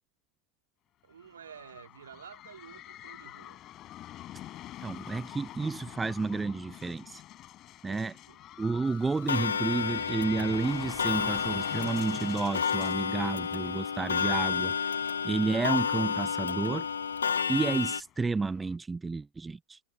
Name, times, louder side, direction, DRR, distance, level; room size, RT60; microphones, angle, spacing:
voice 1, 1.0-3.6 7.9-8.4, right 8 dB, 65° right, 2.6 m, -51 dB
sound 1, 1.1-18.7, left 13 dB, 35° left, 5.4 m, -47 dB
voice 2, 4.8-7.2 7.8-8.1 8.6-14.8 15.2-16.9 17.5-19.8, right 4 dB, 10° right, 0.6 m, -31 dB
Clock, 9.3-18.0, left 6 dB, 70° left, 0.4 m, -31 dB
figure-of-eight pair, 90°, 0 cm